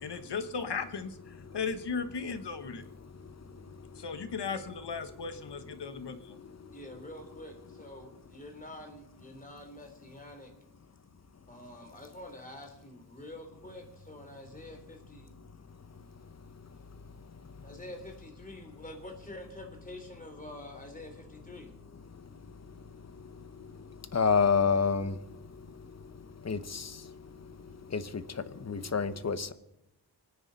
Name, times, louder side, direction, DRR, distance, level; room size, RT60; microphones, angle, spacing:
voice 1, 0.0-2.8 4.0-6.4, left 5 dB, 80° left, 9 dB, 1.3 m, -36 dB
voice 2, 6.7-10.5 11.5-15.4 17.6-21.7, left 1 dB, 20° left, 3 dB, 3.3 m, -47 dB
voice 3, 24.1-25.1 26.5-26.8 27.9-28.0 28.7-29.5, left 5 dB, 40° left, 12 dB, 0.9 m, -27 dB
24.5 x 9.8 x 4.1 m, 0.90 s
wide cardioid pair, 100°, 41 cm